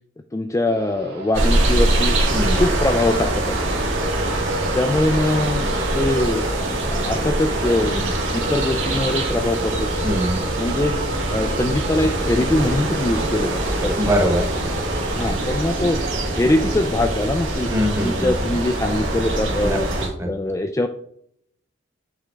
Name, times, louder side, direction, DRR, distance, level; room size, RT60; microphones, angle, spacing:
voice 1, 0.3-2.2 2.5-3.8 4.7-6.4 6.9-10.0 10.6-11.0 11.3-14.0 15.1-16.0 16.3-17.7 18.0-19.9 20.3-20.9, left 1 dB, 15° left, 6 dB, 0.3 m, -22 dB
sound 1, 0.7-16.9, right 1 dB, 55° right, 1.3 m, -31 dB
sound 2, 1.3-20.1, right 1 dB, 80° right, 1.9 m, -23 dB
voice 2, 2.3-2.6 10.0-10.4 14.0-14.5 17.7-18.3 19.6-19.8 20.2-20.3, equal, 15° right, 2 dB, 1.1 m, -22 dB
8.1 x 3.6 x 3.4 m, 0.68 s
head